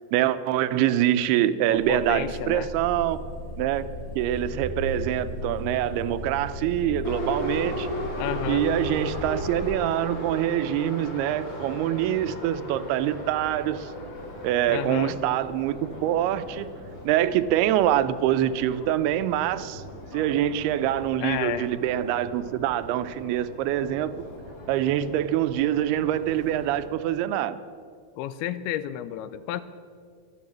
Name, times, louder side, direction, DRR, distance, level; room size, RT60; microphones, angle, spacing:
voice 1, 0.1-3.2 3.6-3.9 4.2-7.9 8.5-13.9 14.4-16.7 17.1-19.8 20.1-24.1 24.7-27.6, right 12 dB, 85° right, 12 dB, 2.5 m, -25 dB
voice 2, 1.7-2.7 8.2-8.6 14.7-15.1 21.2-21.7 28.2-29.6, left 12 dB, 85° left, 14 dB, 2.5 m, -31 dB
sound 1, 1.7-9.7, left 1 dB, 65° left, 4.4 m, -36 dB
Subway metro underground, 7.0-26.9, left 1 dB, 40° left, 2.1 m, -37 dB
13.0 x 11.0 x 7.3 m, 2.1 s
omnidirectional pair, 4.5 m